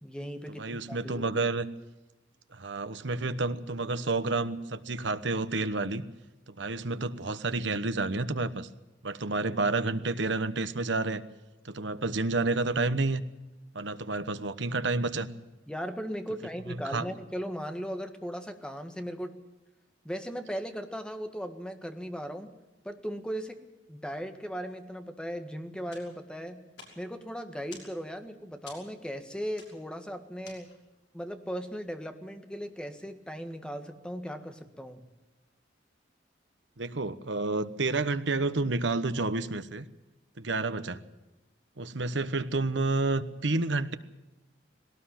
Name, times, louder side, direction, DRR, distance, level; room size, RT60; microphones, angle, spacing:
voice 1, 0.0-1.3 15.7-19.4 20.0-22.5 22.8-23.6 23.9-26.6 27.0-30.7 31.1-35.0, equal, 5° left, 6 dB, 1.7 m, -37 dB
voice 2, 0.6-1.6 2.5-6.0 6.5-8.7 9.0-11.2 11.6-13.2 13.7-15.3 16.9-17.1 36.8-39.9 40.4-41.0 41.8-43.9, right 3 dB, 65° right, 12 dB, 1.1 m, -30 dB
sound 1, 25.9-31.1, left 4 dB, 65° left, 5.8 m, -53 dB
20.0 x 18.0 x 7.4 m, 1.0 s
head